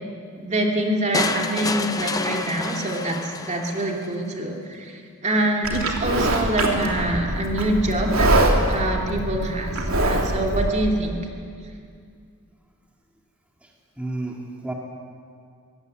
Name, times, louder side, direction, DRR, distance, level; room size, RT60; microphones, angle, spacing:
voice 1, 0.4-4.9 5.2-8.3 8.7-11.2, right 1 dB, 35° right, 1 dB, 2.7 m, -25 dB
sound 1, 1.1-4.1, left 3 dB, 15° left, 0.8 m, -28 dB
Livestock farm animals working animals, 5.6-10.7, right 1 dB, 70° right, 3.0 m, -23 dB
voice 2, 14.0-14.7, right 2 dB, 5° right, -1 dB, 2.0 m, -31 dB
23.5 x 16.5 x 9.2 m, 2.3 s
head